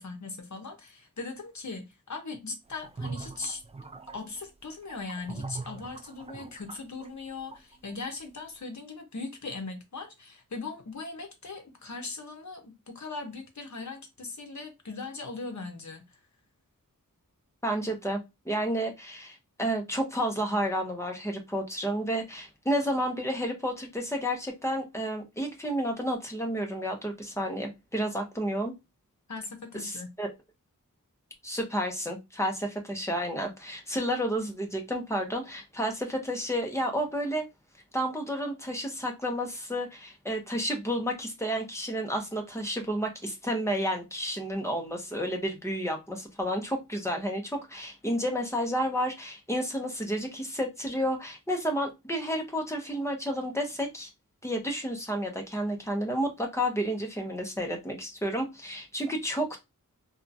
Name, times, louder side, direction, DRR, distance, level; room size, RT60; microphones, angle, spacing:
voice 1, 0.0-3.6 4.1-16.2 29.3-30.1, left 3 dB, 55° left, 0.9 m, -39 dB
sound 1, 2.7-8.0, right 3 dB, 20° right, 0.3 m, -41 dB
voice 2, 17.6-18.2 18.5-28.7 29.7-30.3 31.4-37.4 37.9-54.1 54.4-59.6, equal, 10° left, 0.8 m, -31 dB
2.8 x 2.4 x 2.6 m
wide cardioid pair, 65°, 34 cm